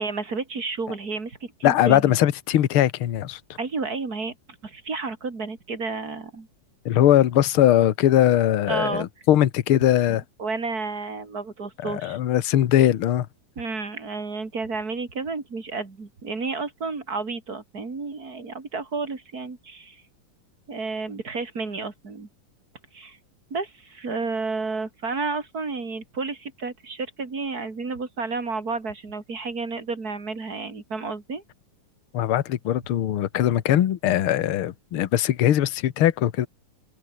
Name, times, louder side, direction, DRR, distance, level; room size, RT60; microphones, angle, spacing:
voice 1, 0.0-2.1 3.6-4.3 4.6-6.5 8.7-9.1 10.4-12.2 13.6-20.0 20.7-22.3 22.9-23.2 23.5-31.4, right 4 dB, 30° right, 3.6 m, -31 dB
voice 2, 1.6-3.4 6.8-10.2 11.8-13.3 32.1-36.5, left 12 dB, 55° left, 1.6 m, -20 dB
open air
omnidirectional pair, 3.6 m